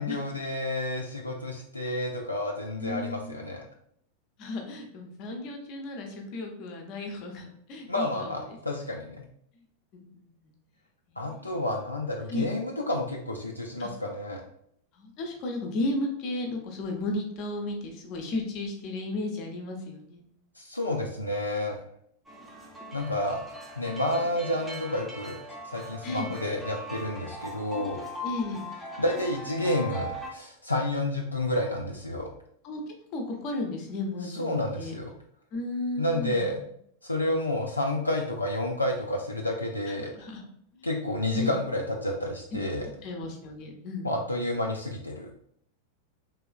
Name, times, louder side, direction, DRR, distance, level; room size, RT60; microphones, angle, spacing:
voice 1, 0.0-3.6 7.9-9.2 11.2-14.4 20.6-21.8 22.9-23.4 23.8-25.4 25.6-28.0 29.0-32.3 34.4-35.1 36.0-36.6 37.0-40.1 40.8-42.9 44.0-45.3, left 1 dB, 85° left, 0 dB, 0.3 m, -30 dB
voice 2, 2.8-3.4 4.4-8.9 9.9-10.5 11.1-11.6 12.3-12.5 13.8-13.9 14.9-20.2 26.0-26.3 28.2-28.7 32.6-32.8 33.1-34.9 35.5-36.5 40.0-40.4 40.7-40.9 41.3-41.5 43.0-44.3, left 2 dB, 40° left, 2 dB, 0.6 m, -34 dB
sound 1, 22.3-30.3, equal, 5° right, 0.6 m, -40 dB
3.1 x 2.7 x 2.3 m, 0.68 s
figure-of-eight pair, 90°, 0 cm